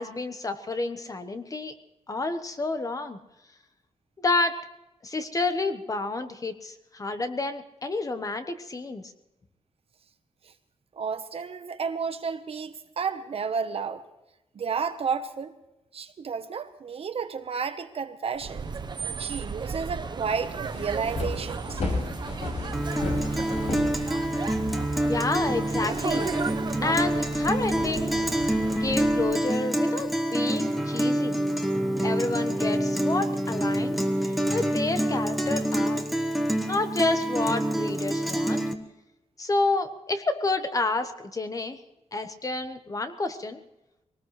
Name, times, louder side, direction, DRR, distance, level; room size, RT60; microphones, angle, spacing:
voice 1, 0.0-1.7 2.1-3.2 4.2-4.6 5.0-9.0 25.0-26.3 26.8-28.3 28.8-31.4 32.0-34.0 34.5-36.0 36.7-38.6 39.4-41.8 42.1-43.6, left 3 dB, 30° left, 9 dB, 1.2 m, -29 dB
voice 2, 10.9-14.0 14.5-15.5 15.9-18.7 19.2-21.8, right 6 dB, 55° right, 9 dB, 1.1 m, -31 dB
sound 1, 18.3-29.5, right 5 dB, 40° right, 0.9 m, -35 dB
sound 2, 20.4-24.6, left 2 dB, 70° left, 6.0 m, -33 dB
Guitar, 22.7-38.7, right 1 dB, ahead, 1.3 m, -27 dB
23.0 x 18.5 x 3.3 m, 0.93 s
wide cardioid pair, 140°, 12 cm